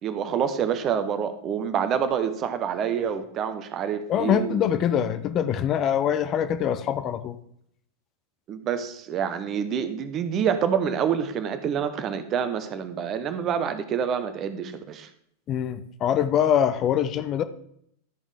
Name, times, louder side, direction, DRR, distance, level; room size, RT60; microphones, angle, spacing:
voice 1, 0.0-4.8 8.5-15.1, right 7 dB, 30° right, 10 dB, 0.9 m, -27 dB
voice 2, 4.1-7.4 15.5-17.4, left 9 dB, 30° left, 11 dB, 0.6 m, -24 dB
12.0 x 5.4 x 4.9 m, 0.70 s
figure-of-eight pair, 90°, 0 cm